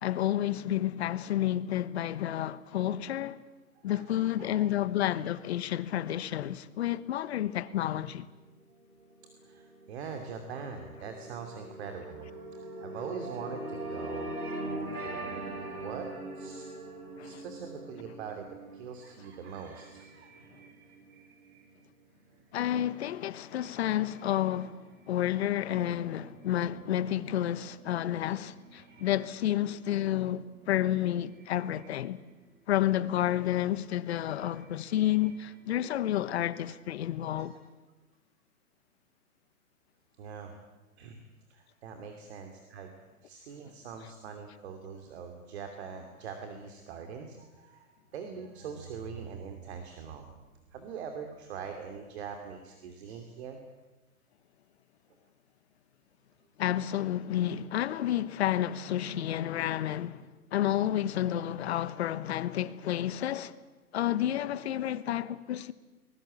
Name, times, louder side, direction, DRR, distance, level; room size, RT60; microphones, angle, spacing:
voice 1, 0.0-3.4 3.8-8.3 17.2-17.4 22.5-32.2 32.7-37.5 56.6-63.5 63.9-65.7, left 12 dB, 45° left, 1.2 m, -30 dB
voice 2, 3.8-5.1 9.4-14.4 15.0-16.1 16.4-16.7 17.2-18.4 18.7-20.3 28.9-29.0 30.1-30.2 37.4-37.5 40.2-40.6 41.0-41.2 41.5-43.0 43.2-53.6 58.5-58.6, right 6 dB, 45° right, 2.8 m, -43 dB
sound 1, 8.8-21.4, right 2 dB, 85° right, 6.9 m, -42 dB
sound 2, 18.2-37.3, right 5 dB, 20° right, 3.1 m, -60 dB
24.5 x 20.5 x 8.6 m
hypercardioid pair, 145°, 44 cm